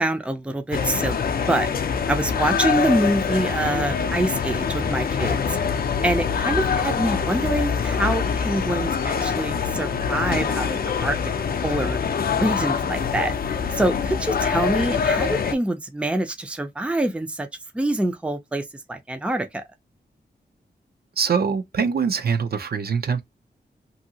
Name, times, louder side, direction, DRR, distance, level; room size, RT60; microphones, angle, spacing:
voice 1, 0.0-1.7 2.1-5.6 6.0-11.2 11.6-12.0 12.4-13.3 13.7-17.5 17.7-19.6, right 1 dB, 5° right, 0.4 m, -25 dB
sound 1, 0.7-15.6, left 6 dB, 55° left, 0.5 m, -24 dB
voice 2, 21.2-23.2, right 6 dB, 60° right, 0.5 m, -23 dB
2.7 x 2.7 x 2.7 m
wide cardioid pair, 130°, 18 cm